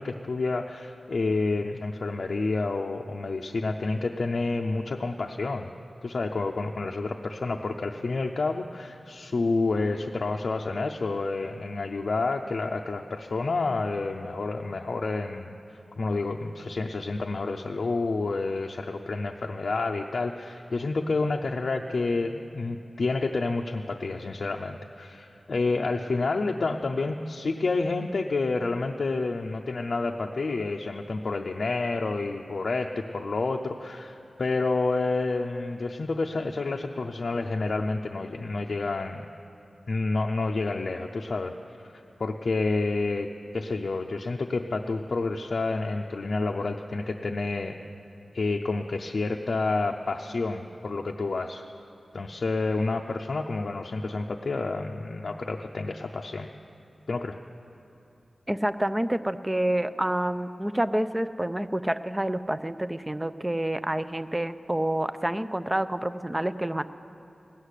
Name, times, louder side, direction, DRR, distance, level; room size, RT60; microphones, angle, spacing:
voice 1, 0.0-5.7 6.0-15.6 16.0-39.3 39.9-41.5 41.9-47.8 48.3-51.6 52.1-56.5 57.1-57.4, left 3 dB, 65° left, 1 dB, 0.5 m, -29 dB
voice 2, 58.5-66.8, right 1 dB, 15° right, 12 dB, 0.5 m, -28 dB
16.5 x 6.5 x 9.9 m, 2.9 s
wide cardioid pair, 65°, 0 cm